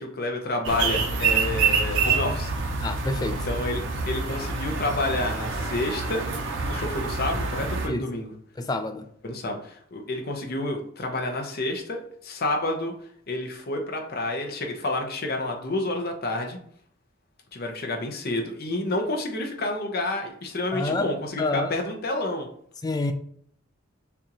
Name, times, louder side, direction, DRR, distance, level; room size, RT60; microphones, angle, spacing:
voice 1, 0.0-2.5 3.4-6.3 6.7-8.3 9.2-12.9 13.3-16.6 17.5-22.5, left 2 dB, 45° left, 0.8 m, -29 dB
sound 1, 0.6-7.9, right 4 dB, 55° right, 0.7 m, -27 dB
voice 2, 2.8-3.4 7.9-8.1 8.6-9.1 20.7-21.1 21.4-21.7 22.8-23.1, left 2 dB, 20° left, 0.3 m, -27 dB
6.9 x 2.5 x 3.0 m
head